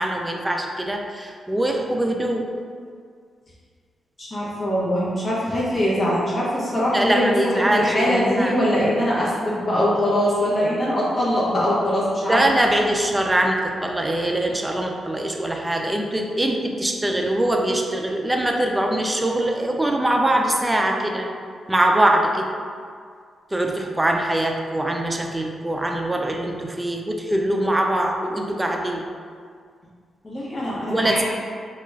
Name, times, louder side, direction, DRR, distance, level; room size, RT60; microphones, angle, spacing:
voice 1, 0.0-2.5 6.9-8.5 12.2-21.3 21.7-22.5 23.5-29.0 30.9-31.2, right 1 dB, 15° right, 2 dB, 0.3 m, -22 dB
voice 2, 4.2-12.4 30.2-31.2, equal, 35° left, -6 dB, 0.8 m, -22 dB
2.3 x 2.2 x 3.1 m, 2.1 s
cardioid pair, 75°, 0 cm